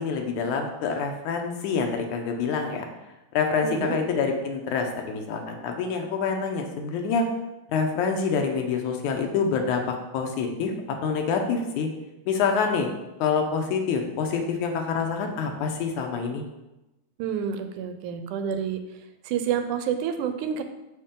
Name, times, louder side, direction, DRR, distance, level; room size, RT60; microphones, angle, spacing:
voice 1, 0.0-2.9 3.3-7.3 7.7-10.7 11.0-11.9 12.3-12.9 13.2-16.4, left 5 dB, 80° left, 4 dB, 2.3 m, -26 dB
voice 2, 3.6-4.0 17.2-18.8 19.2-20.6, right 8 dB, 90° right, 8 dB, 2.2 m, -28 dB
6.8 x 6.4 x 3.8 m, 0.99 s
omnidirectional pair, 3.5 m